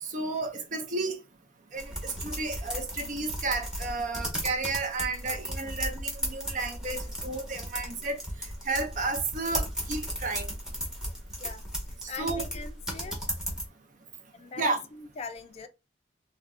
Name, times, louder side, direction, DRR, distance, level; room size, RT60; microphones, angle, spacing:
voice 1, 0.0-1.2 1.7-8.2 8.6-10.5 12.0-12.4 14.6-14.8, right 3 dB, 40° right, 0.5 m, -32 dB
sound 1, 1.8-13.7, equal, 5° right, 0.7 m, -35 dB
voice 2, 12.1-13.2 14.3-15.7, left 4 dB, 35° left, 0.3 m, -41 dB
2.3 x 2.1 x 3.5 m
head